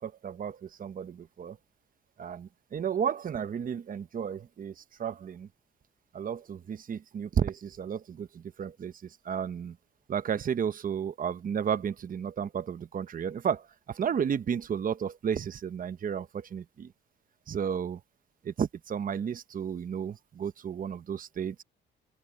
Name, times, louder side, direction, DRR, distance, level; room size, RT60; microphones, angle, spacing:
voice 1, 0.0-1.6 2.2-5.5 6.1-9.8 10.1-16.9 17.5-18.0 18.4-21.6, right 8 dB, 45° right, 0.9 m, -33 dB
open air
cardioid pair, 90°, 20 cm